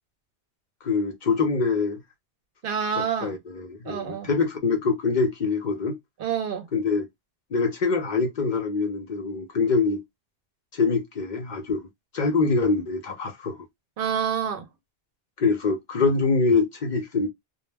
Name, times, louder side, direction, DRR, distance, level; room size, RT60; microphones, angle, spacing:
voice 1, 0.8-2.0 3.0-6.0 6.7-7.0 7.5-10.0 10.7-11.9 12.1-13.6 15.4-17.3, left 4 dB, 55° left, 0.6 m, -24 dB
voice 2, 2.6-3.4 3.9-4.3 6.2-6.7 14.0-14.7, right 7 dB, 65° right, 0.8 m, -27 dB
2.2 x 2.0 x 3.2 m
omnidirectional pair, 1.0 m